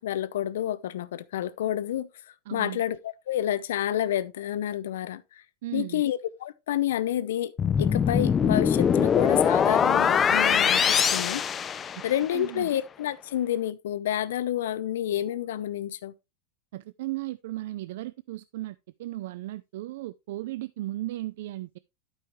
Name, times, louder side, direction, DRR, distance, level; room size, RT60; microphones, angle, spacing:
voice 1, 0.0-2.1 2.5-5.2 5.7-7.5 7.8-11.4 12.0-16.1, left 11 dB, 90° left, 0.7 m, -29 dB
voice 2, 2.5-2.8 5.6-6.0 11.9-12.0 12.3-12.7 16.7-21.8, right 16 dB, 70° right, 0.4 m, -36 dB
sound 1, 7.6-12.3, left 7 dB, 20° left, 0.4 m, -23 dB
12.0 x 5.6 x 3.1 m
supercardioid pair, 150°, 0 cm